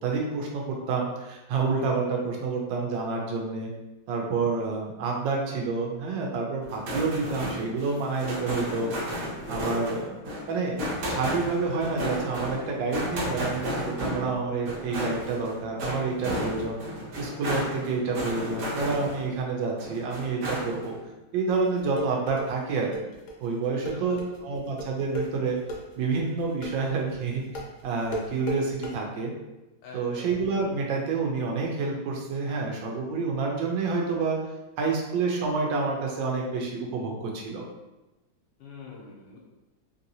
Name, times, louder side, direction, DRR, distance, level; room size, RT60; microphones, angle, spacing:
voice 1, 0.0-3.7 4.1-8.9 9.5-10.2 10.5-10.8 11.0-16.8 17.2-20.9 21.3-22.9 23.4-25.6 26.0-27.4 27.8-29.3 29.9-34.4 34.8-37.6, right 4 dB, 85° right, 0 dB, 1.3 m, -28 dB
sound 1, 6.6-19.4 19.8-21.0, equal, 65° right, 1.2 m, -33 dB
sound 2, 21.5-28.9, equal, 60° left, 0.8 m, -36 dB
voice 2, 23.7-24.4 29.8-30.4 38.6-39.4, left 4 dB, 85° left, -2 dB, 1.3 m, -45 dB
3.2 x 2.6 x 2.7 m, 1.0 s
omnidirectional pair, 2.0 m